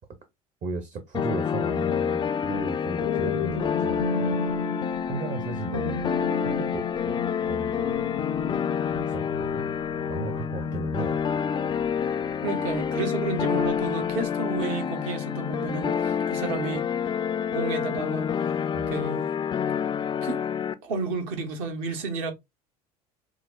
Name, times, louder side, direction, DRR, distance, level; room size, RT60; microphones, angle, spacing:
voice 1, 0.6-4.4 5.1-6.1 6.4-7.9 8.9-9.7 10.1-11.2 18.7-19.0, right 3 dB, 40° right, 0.9 m, -35 dB
sound 1, 1.1-20.7, left 7 dB, 25° left, 0.4 m, -28 dB
sound 2, 2.8-13.1 13.6-13.9, left 4 dB, 75° left, 0.5 m, -35 dB
voice 2, 12.4-16.9 17.5-19.3 20.2-20.4 20.8-22.3, right 4 dB, 65° right, 1.1 m, -32 dB
6.1 x 2.1 x 2.4 m
figure-of-eight pair, 65°, 20 cm